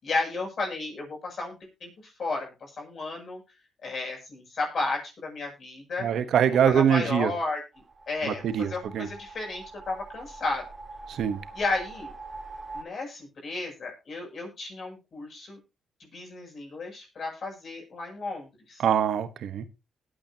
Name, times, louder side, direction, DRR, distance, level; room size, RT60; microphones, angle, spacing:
voice 1, 0.0-3.4 3.8-6.1 6.6-7.6 8.1-10.7 11.5-12.1 12.7-15.6 16.1-18.8, left 3 dB, 50° left, 1 dB, 7.6 m, -33 dB
voice 2, 6.0-7.3 8.2-9.1 11.1-11.4 18.8-19.6, right 8 dB, 70° right, 12 dB, 1.1 m, -24 dB
sound 1, 7.7-12.8, right 3 dB, 25° right, 2.5 m, -44 dB
20.0 x 8.9 x 2.9 m, 0.26 s
cardioid pair, 90°, 0 cm